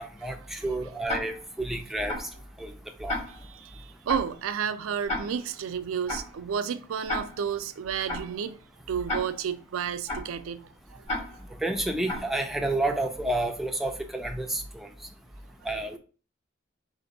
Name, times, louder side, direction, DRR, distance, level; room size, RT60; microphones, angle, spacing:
voice 1, 0.0-2.1 2.6-2.7 3.0-3.1 11.6-14.9 15.7-16.0, right 1 dB, ahead, 0.3 m, -30 dB
Tick-tock, 1.1-1.6 2.1-2.4 3.1-3.6 4.1-4.4 5.1-5.6 6.1-6.4 7.1-7.6 8.1-8.4 9.1-9.6 10.1-10.4 11.1-11.6 12.1-12.4, left 1 dB, 35° left, 2.1 m, -34 dB
voice 2, 3.3-8.6 8.9-11.0, right 7 dB, 90° right, 0.4 m, -32 dB
4.3 x 2.5 x 3.9 m
head